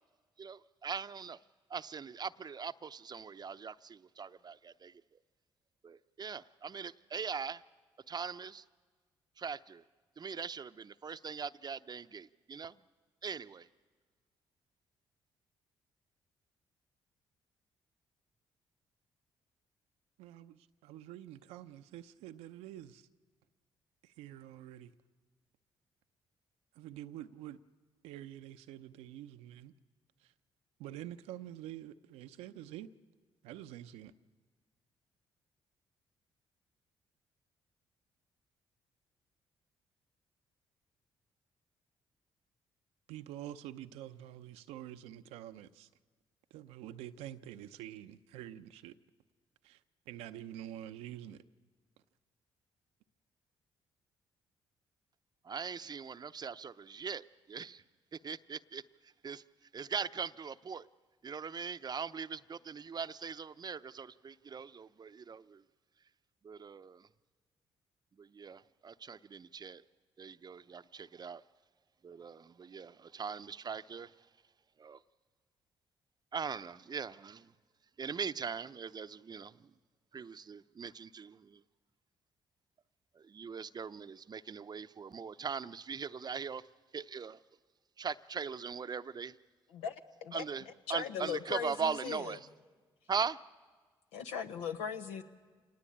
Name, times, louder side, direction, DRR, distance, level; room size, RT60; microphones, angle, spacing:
voice 1, 0.4-1.4 1.7-5.0 5.8-7.6 8.1-8.6 9.4-9.8 10.2-12.8 13.2-13.7 55.4-57.8 58.1-59.4 59.7-60.8 61.2-65.6 66.4-67.1 68.2-69.8 70.2-71.4 72.0-74.1 74.8-75.0 76.3-77.5 78.0-79.7 80.1-81.6 83.1-86.7 86.9-87.4 88.0-89.4 90.3-92.5 93.1-93.4, right 6 dB, 40° right, 0.7 m, -41 dB
voice 2, 20.2-23.1 24.0-24.9 26.8-27.6 28.0-29.7 30.2-30.3 30.8-32.9 33.4-34.1 43.1-45.9 46.5-48.9 49.6-49.8 50.1-51.4, right 12 dB, 85° right, 0.7 m, -47 dB
voice 3, 90.9-92.4 94.1-95.2, left 7 dB, 85° left, 1.2 m, -38 dB
26.5 x 19.0 x 8.6 m
supercardioid pair, 55°, 11 cm